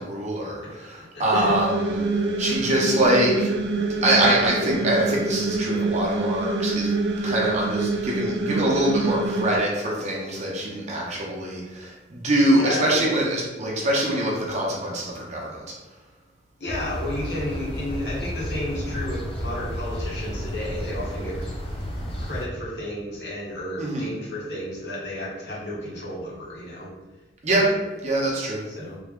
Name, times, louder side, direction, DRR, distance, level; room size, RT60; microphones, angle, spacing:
voice 1, 0.0-6.9 7.2-15.7 23.8-24.1 27.4-27.7 28.0-28.6, right 1 dB, 40° right, -3 dB, 0.7 m, -24 dB
voice 2, 1.1-1.6 12.5-13.2 16.6-21.4 22.2-26.9 27.5-27.8 28.7-29.0, left 1 dB, 65° left, -6 dB, 1.1 m, -32 dB
sound 1, 1.3-9.6, right 2 dB, 65° right, 0.3 m, -26 dB
sound 2, 16.7-22.5, equal, 30° left, 0.6 m, -32 dB
3.4 x 2.2 x 3.6 m, 1.1 s
head